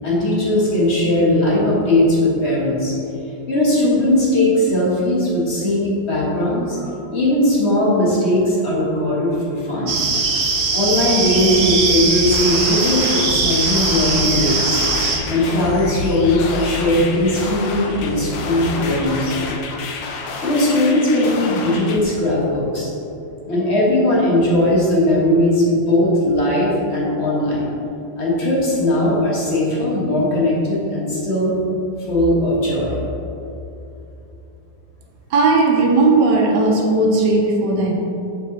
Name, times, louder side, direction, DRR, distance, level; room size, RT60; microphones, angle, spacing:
voice 1, 0.0-2.9 3.5-10.1 10.7-14.8 15.3-19.3 20.4-22.9 23.4-27.7 28.2-31.5 32.1-32.9, left 1 dB, 40° left, -6 dB, 1.6 m, -18 dB
sound 1, 9.9-15.2, right 4 dB, 50° right, 0.9 m, -20 dB
sound 2, 11.0-19.6, left 3 dB, 65° left, 1.1 m, -32 dB
sound 3, 12.3-22.0, left 3 dB, 85° left, 1.4 m, -29 dB
voice 2, 35.3-37.9, right 3 dB, 70° right, 0 dB, 1.3 m, -16 dB
7.1 x 4.6 x 4.0 m, 2.8 s
omnidirectional pair, 2.0 m